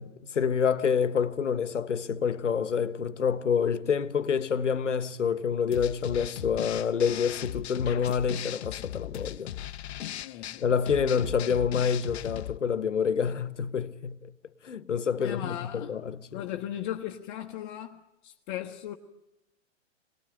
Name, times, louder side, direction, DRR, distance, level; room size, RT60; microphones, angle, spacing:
voice 1, 0.0-9.5 10.6-14.2 14.6-16.4, left 6 dB, 85° left, 1.2 m, -27 dB
sound 1, 5.7-12.6, left 12 dB, 60° left, 0.8 m, -38 dB
voice 2, 10.2-10.6 15.2-15.9 16.3-18.9, left 12 dB, 40° left, 1.1 m, -37 dB
22.5 x 19.5 x 8.9 m
hypercardioid pair, 115°, 36 cm